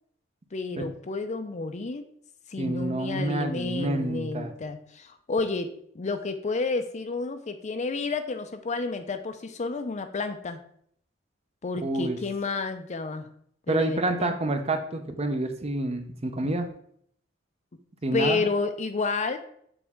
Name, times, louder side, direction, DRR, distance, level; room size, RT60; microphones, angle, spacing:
voice 1, 0.5-2.0 2.5-5.7 5.9-10.6 11.6-13.3 13.7-14.4 18.1-19.4, left 3 dB, 35° left, 8 dB, 0.5 m, -30 dB
voice 2, 2.6-4.5 11.8-12.2 13.7-16.7 18.0-18.4, right 2 dB, 30° right, 6 dB, 0.6 m, -28 dB
7.0 x 4.1 x 3.5 m, 0.66 s
head